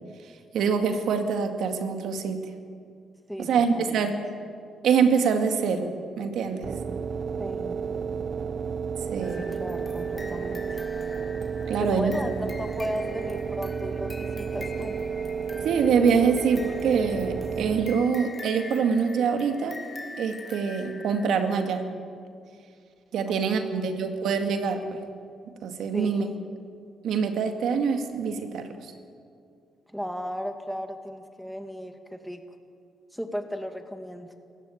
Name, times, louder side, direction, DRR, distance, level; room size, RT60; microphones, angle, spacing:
voice 1, 0.5-2.4 3.4-4.2 4.8-6.7 9.1-9.6 11.7-12.1 15.6-19.8 20.2-21.9 23.1-25.0 25.6-26.3 27.0-28.7, right 6 dB, 75° right, 6 dB, 2.2 m, -25 dB
voice 2, 3.8-4.1 7.4-7.8 9.4-10.8 11.8-14.9 23.3-24.0 25.9-26.4 29.9-32.4 33.1-34.3, equal, ahead, 6 dB, 2.2 m, -35 dB
sound 1, 6.6-18.3, right 6 dB, 55° right, 0.8 m, -32 dB
sound 2, 9.2-21.8, left 3 dB, 25° left, 2.1 m, -45 dB
27.5 x 14.5 x 9.3 m, 2.3 s
cardioid pair, 90°, 0 cm